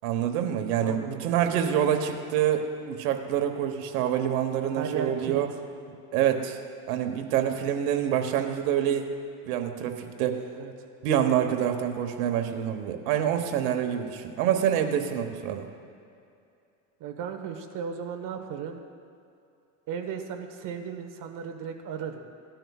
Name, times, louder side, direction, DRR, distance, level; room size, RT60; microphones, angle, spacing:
voice 1, 0.0-5.5 6.1-6.6 6.9-9.0 9.4-10.4 11.0-15.7, right 9 dB, 85° right, 5 dB, 1.3 m, -26 dB
voice 2, 0.8-1.4 4.8-5.4 10.5-10.7 17.0-18.8 19.9-22.2, right 7 dB, 50° right, 4 dB, 1.3 m, -35 dB
18.0 x 12.0 x 2.4 m, 2.5 s
supercardioid pair, 130°, 42 cm